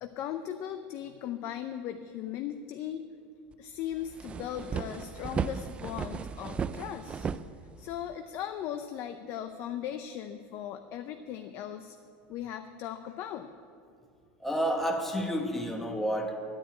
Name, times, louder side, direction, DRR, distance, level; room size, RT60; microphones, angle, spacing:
voice 1, 0.0-3.1 3.6-7.3 7.8-12.0 12.3-13.5, left 10 dB, 45° left, 8 dB, 0.6 m, -38 dB
sound 1, 3.5-3.6 3.9-8.1, right 6 dB, 20° right, 0.3 m, -35 dB
voice 2, 14.4-16.4, equal, 5° left, 1 dB, 1.1 m, -30 dB
11.0 x 9.8 x 8.7 m, 2.3 s
supercardioid pair, 150°, 6 cm